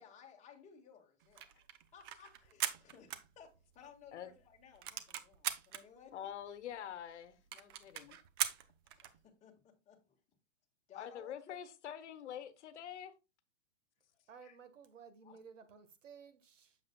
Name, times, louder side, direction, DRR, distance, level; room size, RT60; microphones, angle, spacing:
voice 1, 0.0-1.5 1.9-6.2 8.8-10.2 10.9-11.6 14.4-14.6 15.2-15.4, left 7 dB, 20° left, 1.7 m, -59 dB
sound 1, 1.2-3.9 4.2-4.3 4.6-5.8 6.4-6.5 6.7-6.8 7.1-7.2 7.5-9.2, right 10 dB, 20° right, 0.3 m, -40 dB
voice 2, 6.1-8.2 10.9-13.1, left 9 dB, 65° left, 1.1 m, -46 dB
voice 3, 14.3-16.8, right 6 dB, 80° right, 1.5 m, -56 dB
7.6 x 7.1 x 2.3 m
hypercardioid pair, 135°, 37 cm